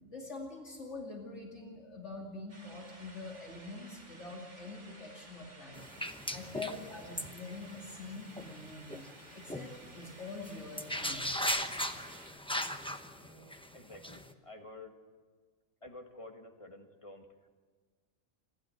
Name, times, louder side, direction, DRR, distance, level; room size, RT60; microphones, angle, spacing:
voice 1, 0.1-5.9 6.3-9.0 9.3-11.4, left 3 dB, 60° left, 0 dB, 2.9 m, -45 dB
sound 1, 2.5-12.3, right 2 dB, 60° right, 3.5 m, -55 dB
sound 2, 5.7-9.1 9.5-9.7 10.0-10.1 10.4-14.3, equal, 5° left, 0.8 m, -37 dB
voice 2, 13.1-15.0 15.8-17.5, left 2 dB, 25° left, 3 dB, 1.8 m, -51 dB
28.5 x 12.0 x 7.8 m, 1.5 s
omnidirectional pair, 1.4 m